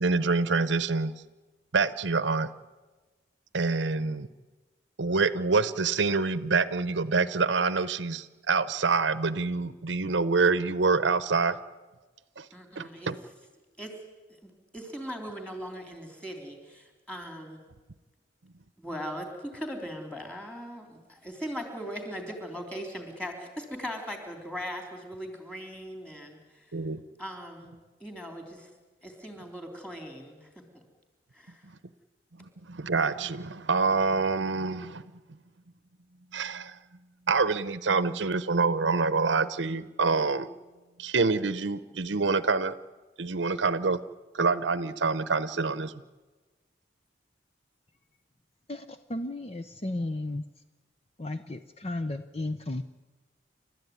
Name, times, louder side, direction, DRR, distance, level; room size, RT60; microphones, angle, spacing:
voice 1, 0.0-1.1 1.7-2.5 3.5-4.3 5.0-11.6 12.4-12.5 12.8-13.1 26.7-27.0 32.7-35.0 36.3-36.8 37.3-40.5 41.0-42.7 43.2-44.0 44.3-45.9, right 4 dB, 80° right, 15 dB, 0.8 m, -26 dB
voice 2, 12.5-13.1 13.8-14.0 14.4-17.6 18.8-26.7 27.2-27.7 28.0-28.7 29.0-30.5 30.7-30.8 31.3-31.6, equal, 5° left, 3 dB, 3.5 m, -39 dB
voice 3, 48.7-50.4 51.2-52.8, left 2 dB, 30° left, 9 dB, 0.7 m, -34 dB
30.0 x 13.0 x 9.4 m, 1.3 s
head